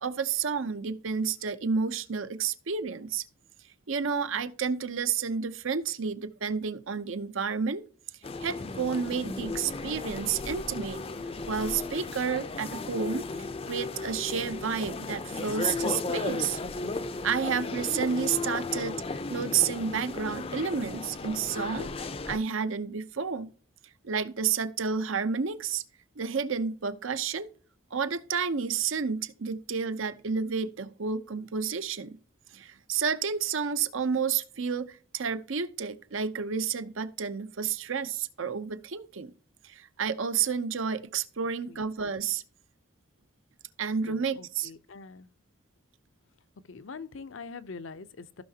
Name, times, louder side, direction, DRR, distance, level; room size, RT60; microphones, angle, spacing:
voice 1, 0.0-3.2 3.9-7.8 8.4-11.0 11.5-13.3 13.7-16.6 17.2-23.5 24.0-25.8 26.2-27.5 27.9-32.2 32.5-39.3 39.6-42.4 43.8-44.7, right 6 dB, 70° right, 0.7 m, -30 dB
sound 1, 8.2-22.4, left 3 dB, 25° left, 0.5 m, -35 dB
voice 2, 44.1-45.3 46.7-48.4, left 4 dB, 70° left, 0.6 m, -44 dB
15.5 x 5.7 x 2.8 m
head